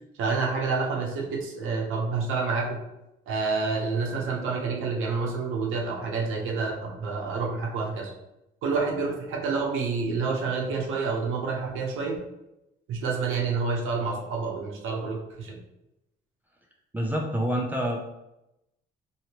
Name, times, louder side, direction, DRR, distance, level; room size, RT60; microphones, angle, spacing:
voice 1, 0.2-2.8 3.3-8.1 8.6-12.2 12.9-15.6, right 4 dB, 85° right, -1 dB, 0.8 m, -28 dB
voice 2, 16.9-18.0, equal, 10° right, -1 dB, 0.4 m, -27 dB
2.9 x 2.8 x 2.9 m, 0.89 s
cardioid pair, 90°, 20 cm